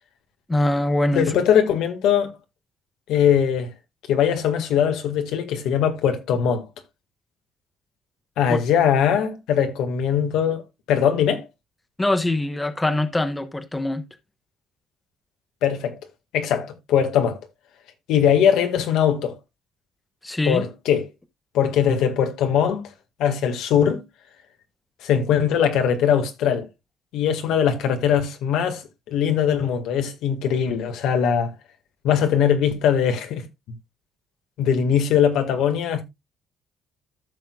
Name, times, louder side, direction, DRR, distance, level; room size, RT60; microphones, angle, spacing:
voice 1, 0.5-1.3 8.5-8.6 12.0-14.0 20.2-20.6, left 1 dB, 10° left, 0.9 m, -23 dB
voice 2, 1.1-2.3 3.1-3.7 4.1-6.7 8.4-10.6 10.9-11.4 15.6-16.0 16.3-17.4 18.1-19.3 20.5-21.1 21.5-22.9 23.2-24.0 25.0-26.7 27.1-31.5 32.0-33.4 34.6-36.0, left 8 dB, 85° left, 1.8 m, -21 dB
14.5 x 6.3 x 2.3 m
cardioid pair, 135°, 0 cm